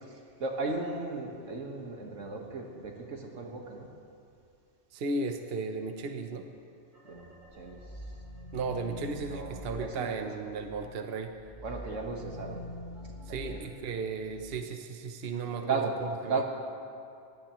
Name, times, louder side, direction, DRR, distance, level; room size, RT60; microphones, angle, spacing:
voice 1, 0.0-3.9 7.1-7.3 7.6-7.8 9.3-10.1 11.6-12.6 13.3-13.6 15.6-15.9 16.2-16.4, right 3 dB, 85° right, 1 dB, 1.8 m, -35 dB
voice 2, 4.9-6.5 8.5-11.4 13.3-16.4, right 4 dB, 55° right, 6 dB, 1.0 m, -35 dB
sound 1, 6.9-10.8 11.2-14.6, left 1 dB, 60° left, 3.3 m, -45 dB
21.5 x 16.0 x 3.1 m, 2.5 s
omnidirectional pair, 1.3 m